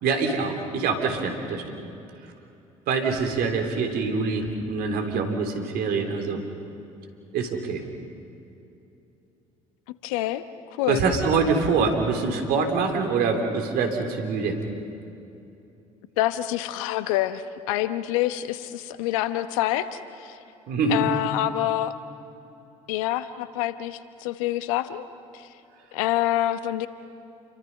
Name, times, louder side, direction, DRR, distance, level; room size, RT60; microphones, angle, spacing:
voice 1, 0.0-1.6 2.9-6.4 7.3-7.8 10.9-14.6 20.7-21.0, right 4 dB, 60° right, 4 dB, 3.4 m, -25 dB
voice 2, 10.0-10.4 10.7-11.0 16.2-20.4 20.9-21.9 22.9-25.1 25.3-25.5 25.9-26.9, left 14 dB, 75° left, 13 dB, 1.0 m, -26 dB
29.0 x 23.5 x 5.5 m, 2.8 s
hypercardioid pair, 60°, 18 cm